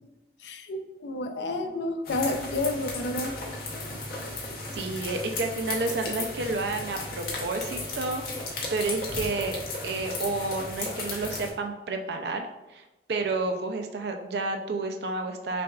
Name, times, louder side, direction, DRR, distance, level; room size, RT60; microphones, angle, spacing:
voice 1, 0.4-3.4, left 2 dB, 75° left, 6 dB, 0.4 m, -30 dB
sound 1, 2.0-11.5, left 2 dB, 55° left, 0.8 m, -35 dB
voice 2, 4.7-12.8 13.1-15.6, right 3 dB, 65° right, 4 dB, 0.4 m, -30 dB
5.8 x 2.3 x 2.3 m, 1.0 s
head